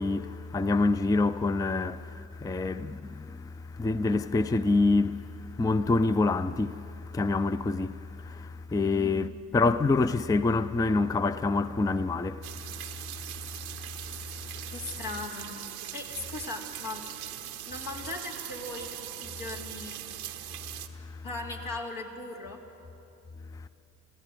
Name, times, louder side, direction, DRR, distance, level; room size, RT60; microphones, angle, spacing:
voice 1, 0.0-14.7 20.9-21.2, left 3 dB, 10° left, 0.5 m, -27 dB
voice 2, 8.7-9.3 14.7-15.6 15.9-17.1 17.7-20.0 21.2-22.6, left 3 dB, 65° left, 3.0 m, -38 dB
sound 1, 12.4-20.9, right 12 dB, 90° right, 0.9 m, -41 dB
28.0 x 15.5 x 7.8 m
hypercardioid pair, 40°, 41 cm